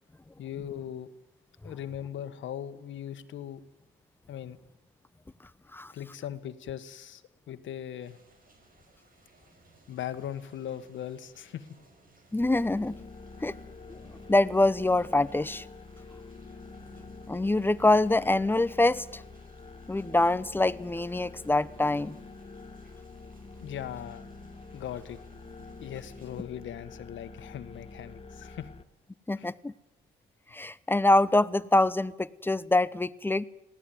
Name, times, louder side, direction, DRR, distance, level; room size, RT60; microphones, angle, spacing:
voice 1, 0.4-1.1 1.6-3.6 4.3-4.6 5.9-7.2 7.5-8.2 9.9-11.7 23.6-24.2 24.7-25.2 25.8-28.7 29.4-29.5, left 10 dB, 70° left, 11 dB, 1.6 m, -39 dB
sound 1, 8.0-26.4, right 2 dB, 45° right, 5.8 m, -59 dB
voice 2, 12.3-12.9 13.4-13.5 13.9-14.0 14.3-15.7 17.3-19.2 19.9-22.2 29.3-29.7 30.5-33.5, left 2 dB, 10° left, 17 dB, 0.8 m, -25 dB
sound 2, 12.4-28.8, left 3 dB, 30° left, 1.3 m, -47 dB
20.5 x 16.5 x 9.4 m, 0.88 s
cardioid pair, 90°, 20 cm